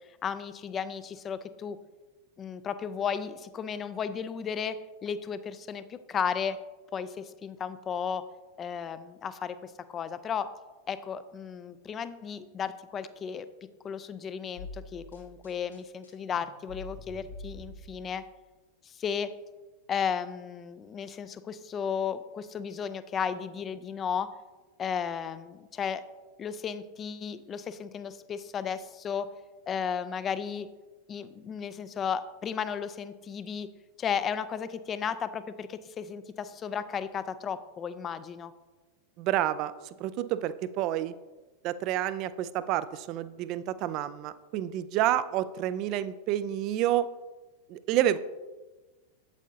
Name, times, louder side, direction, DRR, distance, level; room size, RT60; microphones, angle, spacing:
voice 1, 0.2-1.8 2.4-4.8 5.0-6.6 6.9-8.2 8.6-10.5 10.9-13.5 13.8-18.2 18.8-19.3 19.9-24.3 24.8-26.0 26.4-29.3 29.7-30.7 31.1-33.7 34.0-38.5, left 7 dB, 25° left, 13 dB, 0.4 m, -34 dB
sound 1, 14.6-18.2, left 1 dB, 80° left, 2.7 m, -45 dB
voice 2, 39.2-39.7 40.0-41.1 41.6-47.1 47.7-48.2, right 12 dB, 40° right, 15 dB, 0.4 m, -29 dB
8.2 x 8.1 x 2.7 m, 1.2 s
figure-of-eight pair, 90°, 0 cm